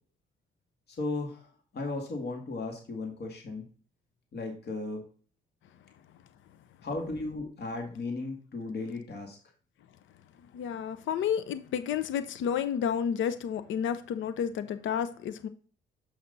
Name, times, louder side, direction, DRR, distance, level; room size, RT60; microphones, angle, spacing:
voice 1, 0.9-3.6 4.3-5.0 6.8-9.4, left 3 dB, 55° left, 2 dB, 2.3 m, -36 dB
voice 2, 10.5-15.5, left 8 dB, 75° left, 12 dB, 0.7 m, -31 dB
7.3 x 5.9 x 4.0 m, 0.41 s
cardioid pair, 90°, 20 cm